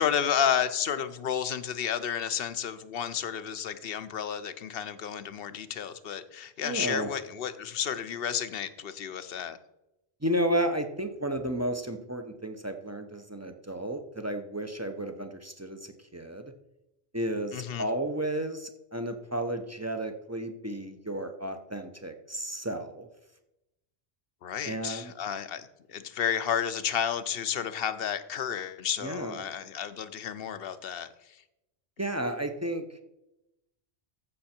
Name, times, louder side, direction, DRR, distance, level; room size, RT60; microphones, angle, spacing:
voice 1, 0.0-9.6 17.5-17.9 24.4-31.4, left 8 dB, 65° left, 13 dB, 0.9 m, -31 dB
voice 2, 6.6-7.1 10.2-16.4 17.1-23.1 24.7-25.1 29.0-29.4 32.0-32.8, right 1 dB, 15° right, 7 dB, 0.7 m, -32 dB
14.5 x 5.7 x 4.3 m, 0.90 s
omnidirectional pair, 1.1 m